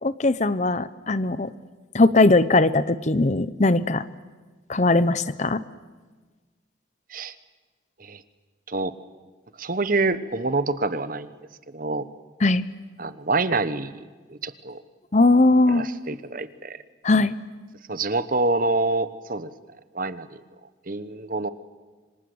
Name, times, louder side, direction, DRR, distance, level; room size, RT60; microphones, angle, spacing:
voice 1, 0.0-1.5 1.9-4.1 4.7-5.6 12.4-12.6 15.1-15.9 17.0-17.3, left 2 dB, 35° left, 16 dB, 0.8 m, -19 dB
voice 2, 9.6-11.3 11.7-12.1 13.0-14.0 14.3-14.8 15.7-16.8 17.9-19.5 19.9-20.3 20.9-21.5, right 3 dB, 45° right, 14 dB, 1.1 m, -26 dB
27.0 x 25.5 x 8.0 m, 1.3 s
head